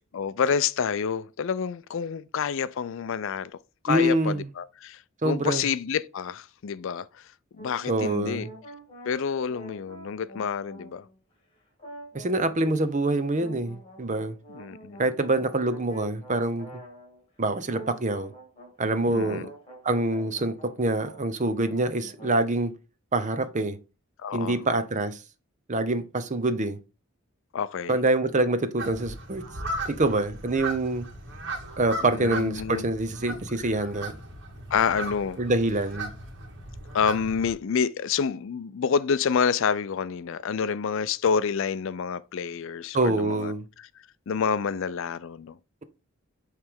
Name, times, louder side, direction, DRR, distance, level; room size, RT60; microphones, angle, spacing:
voice 1, 0.1-3.5 3.8-7.1 7.6-8.5 9.1-11.0 14.5-15.0 19.1-19.5 24.2-24.6 27.5-28.0 32.0-32.8 34.7-35.4 36.9-43.5 44.3-45.6, left 6 dB, 65° left, 0.4 m, -28 dB
voice 2, 3.9-4.5 5.2-5.6 7.9-8.5 12.1-14.3 15.0-16.7 17.4-18.3 18.8-19.5 19.8-22.7 23.1-23.8 24.3-25.2 25.7-26.8 27.9-29.4 29.9-31.1 31.8-34.2 35.4-36.1 42.9-43.6, right 2 dB, 35° right, 0.8 m, -25 dB
sound 1, 7.6-11.3 11.8-12.9 13.4-17.3 17.6-21.3 21.5-22.5, right 1 dB, 25° left, 2.6 m, -46 dB
sound 2, 28.8-37.5, right 2 dB, 60° right, 1.7 m, -37 dB
8.7 x 3.3 x 3.6 m
head